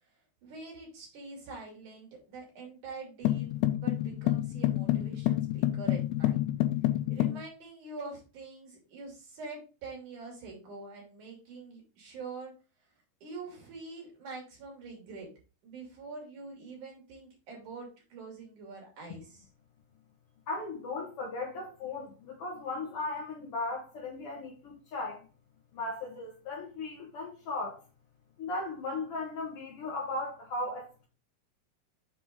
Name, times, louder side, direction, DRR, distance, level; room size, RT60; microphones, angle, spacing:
voice 1, 0.4-6.4 7.1-12.5 13.2-15.3 15.6-19.5, right 3 dB, 50° right, 3.7 m, -45 dB
sound 1, 3.2-7.4, left 14 dB, 85° left, 2.6 m, -28 dB
voice 2, 20.5-25.2 25.7-27.8 28.4-31.1, left 2 dB, 65° left, 1.5 m, -37 dB
7.3 x 4.8 x 3.6 m
omnidirectional pair, 4.7 m